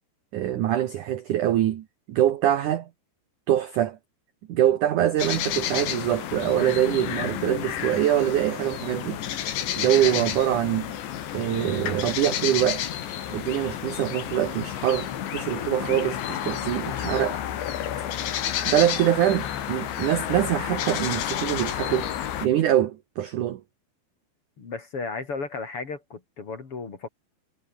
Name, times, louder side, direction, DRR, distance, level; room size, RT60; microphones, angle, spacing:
voice 1, 0.3-2.9 3.5-4.0 4.5-9.2 9.8-10.9 11.3-12.8 13.3-17.4 18.7-22.1 22.4-23.6, right 12 dB, 75° right, 1.9 m, -24 dB
sound 1, 5.2-22.5, left 10 dB, 80° left, 4.7 m, -30 dB
voice 2, 24.6-27.1, left 4 dB, 35° left, 3.1 m, -34 dB
omnidirectional pair, 5.1 m